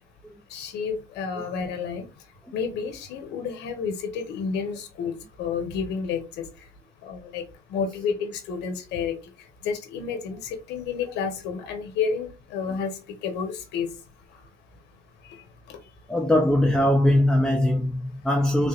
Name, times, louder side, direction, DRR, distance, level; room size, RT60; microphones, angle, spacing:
voice 1, 0.5-2.0 2.5-6.4 7.0-7.4 7.7-9.2 9.6-12.9 13.2-13.9 15.2-15.4, left 6 dB, 85° left, 1.1 m, -30 dB
voice 2, 16.1-18.7, left 1 dB, 5° left, 0.7 m, -21 dB
3.9 x 3.0 x 2.5 m
cardioid pair, 110°, 17 cm